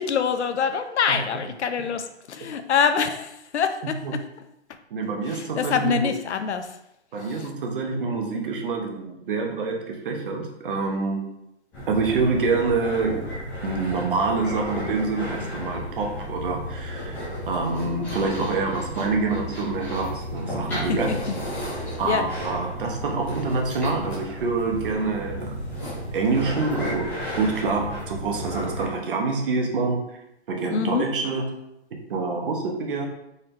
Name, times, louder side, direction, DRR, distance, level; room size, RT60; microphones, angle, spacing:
voice 1, 0.0-4.2 5.3-6.7 7.4-7.5 20.7-21.2 22.0-22.2 30.7-31.1, left 6 dB, 75° left, 8 dB, 0.6 m, -25 dB
voice 2, 3.8-4.1 4.9-6.1 7.1-11.2 11.9-13.4 13.6-21.1 22.0-25.5 26.1-30.1 30.5-31.6 32.1-33.1, right 3 dB, 50° right, 1 dB, 0.8 m, -26 dB
sound 1, 11.7-28.9, equal, 5° left, 0.5 m, -33 dB
4.0 x 3.3 x 2.5 m, 0.85 s
hypercardioid pair, 145°, 34 cm